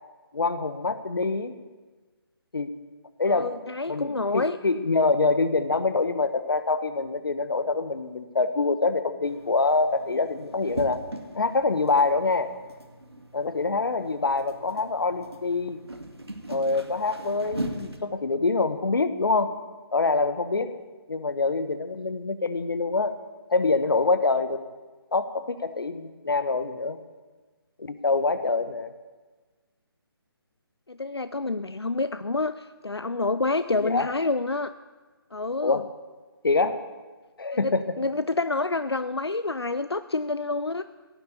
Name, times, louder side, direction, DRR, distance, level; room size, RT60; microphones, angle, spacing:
voice 1, 0.3-1.5 2.5-2.7 3.2-3.5 3.9-11.0 11.3-12.5 13.3-15.8 16.5-19.5 19.9-20.8 21.1-23.2 23.5-24.6 25.1-27.0 27.8-28.9 33.7-34.1 35.6-35.8 36.4-36.8 37.4-37.8, left 3 dB, 60° left, 12 dB, 1.1 m, -25 dB
voice 2, 3.3-4.6 30.9-34.7 35.3-35.8 37.5-40.8, left 3 dB, 85° left, 13 dB, 0.5 m, -28 dB
sound 1, 9.2-18.0, right 1 dB, 85° right, 1.9 m, -40 dB
16.5 x 7.0 x 8.1 m, 1.3 s
figure-of-eight pair, 145°, 13 cm